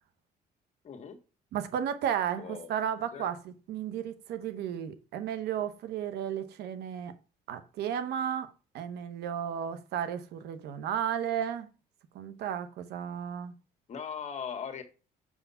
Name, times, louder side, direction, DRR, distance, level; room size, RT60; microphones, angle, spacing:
voice 1, 0.8-1.2 2.4-2.7 3.1-3.3 13.9-14.8, left 7 dB, 40° left, 1.5 m, -39 dB
voice 2, 1.5-7.1 7.5-11.7 12.1-13.5, right 9 dB, 75° right, 1.1 m, -34 dB
7.0 x 4.8 x 5.6 m
cardioid pair, 110°, 17 cm